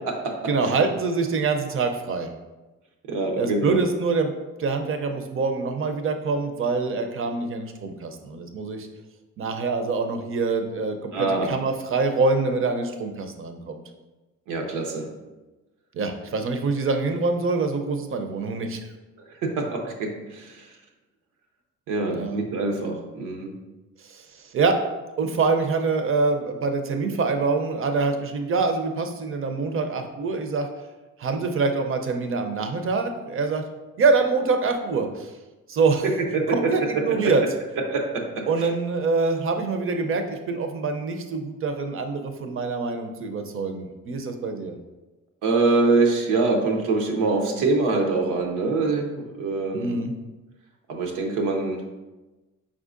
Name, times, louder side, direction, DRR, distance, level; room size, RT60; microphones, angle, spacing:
voice 1, 0.5-2.3 3.4-4.3 4.6-8.9 9.4-13.8 15.9-18.8 22.2-22.4 24.0-24.8 25.2-30.7 31.2-33.6 34.0-35.3 35.7-36.1 36.5-37.4 38.5-44.8 49.7-50.1, right 4 dB, 45° right, 6 dB, 0.6 m, -25 dB
voice 2, 3.1-3.8 11.1-11.5 14.5-15.1 19.4-20.7 21.9-23.5 36.3-36.7 37.9-38.2 38.6-38.7 45.4-50.0 50.9-51.8, right 3 dB, 90° right, 2 dB, 0.8 m, -24 dB
4.8 x 3.6 x 2.5 m, 1.1 s
cardioid pair, 90°, 30 cm